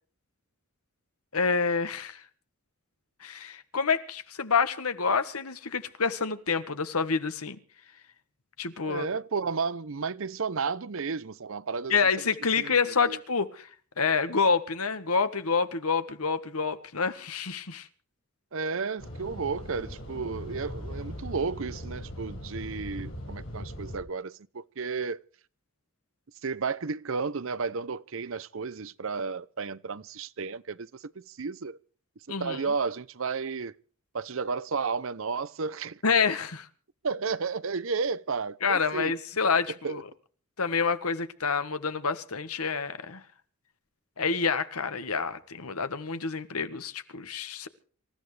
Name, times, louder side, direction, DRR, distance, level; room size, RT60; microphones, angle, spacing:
voice 1, 1.3-2.2 3.2-7.6 8.6-9.0 11.9-13.7 14.0-17.9 32.3-32.6 36.0-36.7 38.6-40.0 40.6-43.2 44.2-47.7, left 5 dB, 80° left, 1.5 m, -28 dB
voice 2, 8.8-12.0 12.6-13.2 18.5-25.2 26.4-31.8 32.3-33.7 34.1-36.0 37.0-39.1 39.8-40.0, right 5 dB, 60° right, 0.6 m, -32 dB
sound 1, 19.0-24.0, equal, 60° left, 6.2 m, -39 dB
27.0 x 14.5 x 3.3 m
head